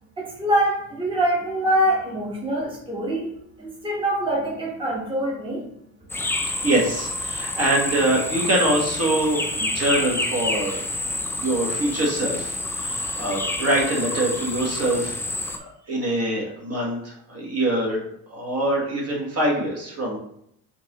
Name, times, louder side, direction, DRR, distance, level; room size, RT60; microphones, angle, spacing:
voice 1, 0.2-3.3 3.6-5.7, right 1 dB, 10° right, -4 dB, 1.2 m, -24 dB
sound 1, 6.1-15.6, left 2 dB, 5° left, 0.3 m, -28 dB
voice 2, 6.5-10.8 11.3-15.2 15.9-18.0 18.3-20.2, right 1 dB, 35° right, -2 dB, 1.4 m, -24 dB
4.4 x 2.6 x 3.0 m, 0.73 s
supercardioid pair, 70°, 41 cm